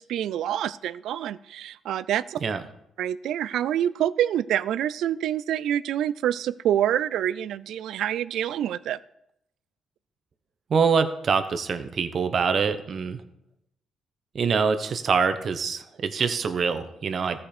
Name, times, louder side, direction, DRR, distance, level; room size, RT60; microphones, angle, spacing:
voice 1, 0.0-2.4 3.0-9.0, right 11 dB, 80° right, 18 dB, 0.3 m, -26 dB
voice 2, 10.7-13.2 14.3-17.4, right 5 dB, 50° right, 10 dB, 0.9 m, -25 dB
14.5 x 5.1 x 4.4 m, 0.79 s
cardioid pair, 90°, 0 cm